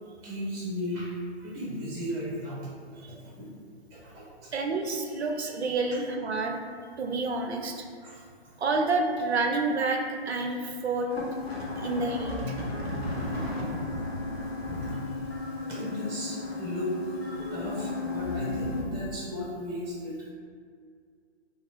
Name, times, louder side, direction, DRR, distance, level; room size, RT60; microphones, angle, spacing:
voice 1, 0.2-1.2 1.4-3.5 3.9-4.5 8.0-8.6 13.3-13.7 14.7-17.1 17.5-20.3, left 1 dB, 20° right, -6 dB, 0.7 m, -36 dB
voice 2, 4.5-6.6 7.0-7.8 8.6-11.1 11.8-12.6, right 3 dB, 80° right, 3 dB, 0.5 m, -29 dB
sound 1, 11.1-18.8, left 2 dB, 70° left, 0.8 m, -34 dB
2.5 x 2.2 x 3.4 m, 2.1 s
figure-of-eight pair, 120°, 32 cm